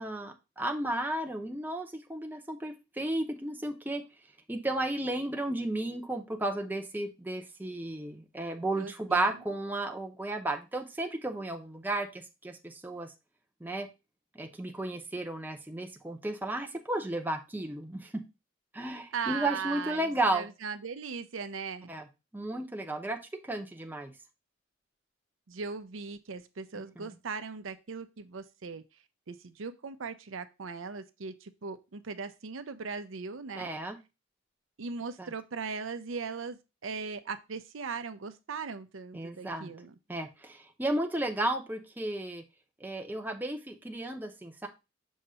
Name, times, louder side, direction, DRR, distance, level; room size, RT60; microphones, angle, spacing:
voice 1, 0.0-4.0 4.5-13.1 13.6-13.9 14.3-18.1 18.7-20.5 21.9-22.1 22.3-23.2 23.4-24.1 27.0-27.1 33.6-34.0 35.2-35.3 39.1-39.7 40.1-42.4 42.8-44.7, right 2 dB, 10° right, 0.7 m, -33 dB
voice 2, 8.8-9.3 19.1-21.9 25.5-28.8 29.3-33.7 34.8-39.9, right 5 dB, 80° right, 0.6 m, -39 dB
6.3 x 2.9 x 5.5 m
head